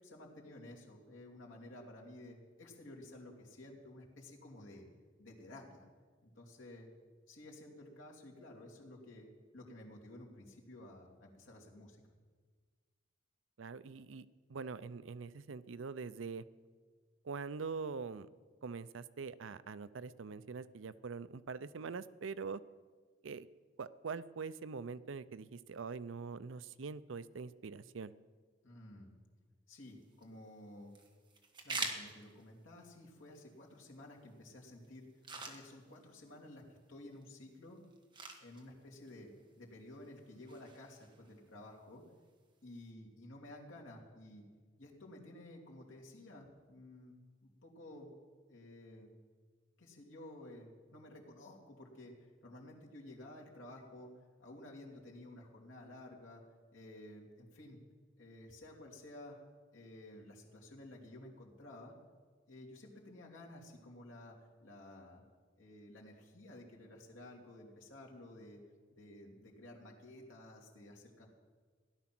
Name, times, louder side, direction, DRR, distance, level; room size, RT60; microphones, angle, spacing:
voice 1, 0.0-4.9 5.2-5.9 6.2-6.9 7.3-9.3 9.5-12.0 28.6-29.1 29.7-30.9 31.6-35.1 35.3-37.8 38.4-39.3 39.6-42.0 42.6-44.4 44.8-48.1 48.5-49.1 49.8-54.1 54.4-56.4 56.7-57.8 58.2-59.4 59.7-61.9 62.5-65.2 65.6-68.6 69.0-71.3, left 1 dB, 90° left, -2 dB, 3.0 m, -53 dB
voice 2, 13.6-16.4 17.2-18.3 18.6-22.6 23.2-23.5 23.8-28.1, right 5 dB, 80° right, 16 dB, 0.5 m, -44 dB
sound 1, 29.9-42.9, right 3 dB, 25° right, 1.6 m, -49 dB
17.0 x 12.0 x 6.0 m, 1.5 s
head